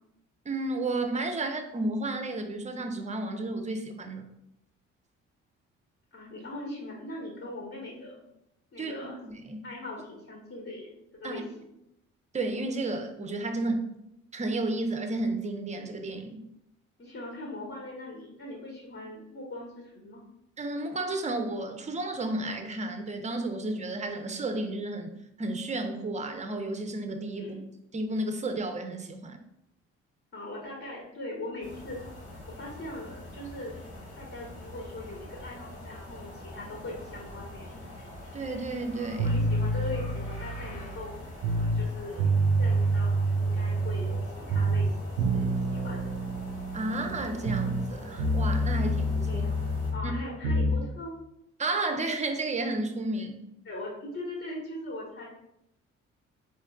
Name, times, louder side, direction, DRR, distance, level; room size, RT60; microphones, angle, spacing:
voice 1, 0.5-4.2 8.8-8.9 9.3-9.7 11.2-11.4 12.3-13.9 14.3-16.4 20.6-25.1 25.4-27.5 27.9-29.4 38.3-39.3 46.7-49.4 50.0-50.1 51.6-53.4, right 2 dB, 20° right, 6 dB, 0.6 m, -32 dB
voice 2, 6.1-8.2 8.7-9.2 9.6-11.7 17.0-20.2 27.3-27.6 30.3-32.0 32.5-33.7 34.1-37.8 39.1-42.3 42.6-46.2 49.2-49.6 49.9-51.1 53.6-55.3, left 1 dB, 35° left, -3 dB, 1.2 m, -40 dB
sound 1, 31.6-49.9, left 1 dB, 85° left, 1.3 m, -43 dB
sound 2, 39.2-41.9 42.2-44.2 44.5-47.9 48.2-50.8, right 1 dB, 85° right, 0.6 m, -27 dB
4.2 x 3.1 x 2.4 m, 0.81 s
hypercardioid pair, 50°, 36 cm